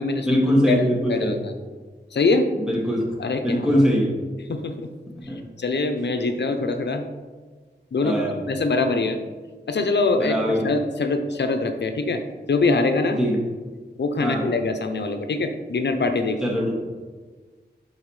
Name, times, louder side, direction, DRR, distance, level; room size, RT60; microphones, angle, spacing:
voice 1, 0.3-1.4 2.7-3.0 3.4-4.1 5.3-5.4 8.0-8.3 10.2-10.6 13.2-13.4 14.2-14.4 16.4-16.7, equal, 5° right, -4 dB, 2.1 m, -21 dB
voice 2, 1.1-1.5 2.1-2.5 3.2-3.8 4.5-4.9 5.2-7.0 7.9-9.2 9.7-12.2 12.5-13.2 14.0-16.4, left 3 dB, 75° left, 7 dB, 0.7 m, -23 dB
11.5 x 4.1 x 3.2 m, 1.4 s
wide cardioid pair, 60°, 18 cm